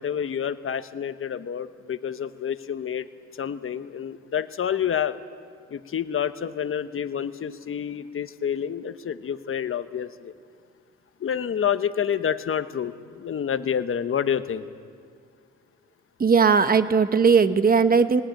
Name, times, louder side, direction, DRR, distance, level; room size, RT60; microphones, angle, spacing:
voice 1, 0.0-3.1 3.4-5.2 5.7-10.3 11.2-14.6, left 8 dB, 45° left, 11 dB, 1.1 m, -28 dB
voice 2, 16.2-18.2, right 5 dB, 30° right, 11 dB, 1.1 m, -18 dB
19.5 x 19.0 x 9.1 m, 2.1 s
cardioid pair, 90°, 30 cm